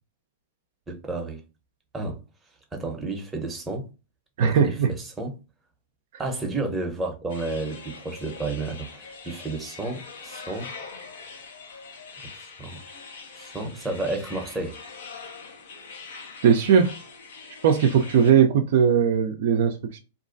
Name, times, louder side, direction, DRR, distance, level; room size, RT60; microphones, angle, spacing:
voice 1, 0.9-1.4 1.9-2.2 2.7-3.8 4.4-5.3 6.2-10.7 12.2-12.3 12.6-12.8 13.3-14.8, right 2 dB, 15° right, 0.7 m, -31 dB
voice 2, 4.4-4.9 16.4-17.0 17.6-20.0, right 7 dB, 65° right, 0.4 m, -19 dB
sound 1, 7.3-18.3, left 4 dB, 70° left, 0.7 m, -43 dB
2.5 x 2.2 x 2.4 m
hypercardioid pair, 115°, 0 cm